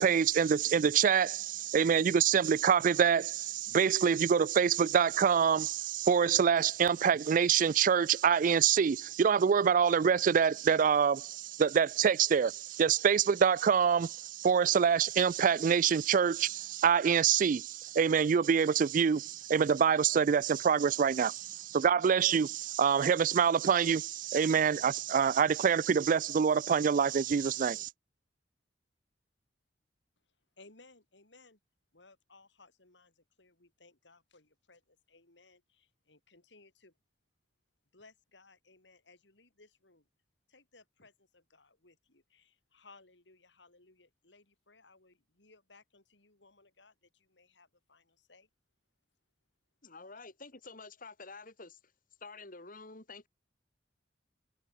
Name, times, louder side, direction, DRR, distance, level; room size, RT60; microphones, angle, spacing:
voice 1, 0.0-27.9, right 7 dB, 45° right, 0.3 m, -26 dB
voice 2, 30.6-31.6 31.9-36.9 37.9-40.0 40.5-48.5, left 3 dB, 70° left, 4.1 m, -62 dB
voice 3, 49.8-51.8 52.2-53.3, left 3 dB, 50° left, 3.7 m, -49 dB
head